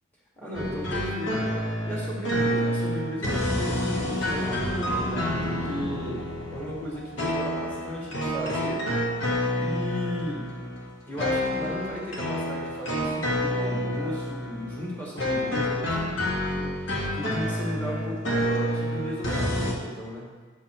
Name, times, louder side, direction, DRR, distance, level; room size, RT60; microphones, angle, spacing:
voice 1, 0.4-8.9 9.6-10.5 11.0-20.4, equal, 10° left, -5 dB, 1.8 m, -36 dB
sound 1, 0.5-19.7, equal, 75° left, 1.5 m, -28 dB
8.1 x 4.5 x 4.4 m, 1.4 s
head